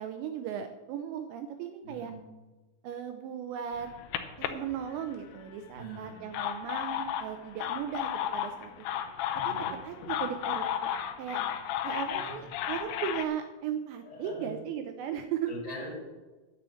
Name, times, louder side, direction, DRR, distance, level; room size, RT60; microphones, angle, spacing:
voice 1, 0.0-2.1 2.8-3.9 4.4-9.0 9.5-9.6 9.8-10.9 11.2-11.4 11.8-15.5, right 9 dB, 85° right, 7 dB, 2.5 m, -37 dB
voice 2, 1.8-2.2 5.8-6.2 9.5-9.8 14.0-14.5 15.4-15.9, right 1 dB, 15° right, -2 dB, 3.9 m, -42 dB
sound 1, 3.7-5.4 6.1-13.2, left 10 dB, 80° left, 2.7 m, -33 dB
11.0 x 7.0 x 7.7 m, 1.2 s
omnidirectional pair, 5.8 m